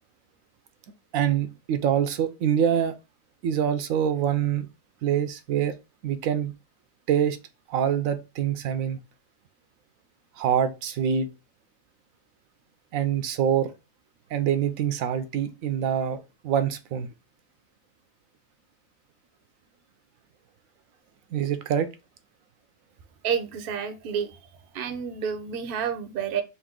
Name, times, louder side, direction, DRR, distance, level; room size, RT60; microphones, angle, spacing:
voice 1, 1.1-2.9 3.4-4.7 5.0-5.7 6.0-6.5 7.1-7.4 7.7-9.0 10.4-11.3 12.9-13.7 14.3-17.1 21.3-21.9, right 9 dB, 85° right, 1.0 m, -25 dB
voice 2, 23.2-24.4 24.7-26.4, right 7 dB, 55° right, 0.7 m, -29 dB
4.1 x 2.6 x 3.7 m
omnidirectional pair, 1.4 m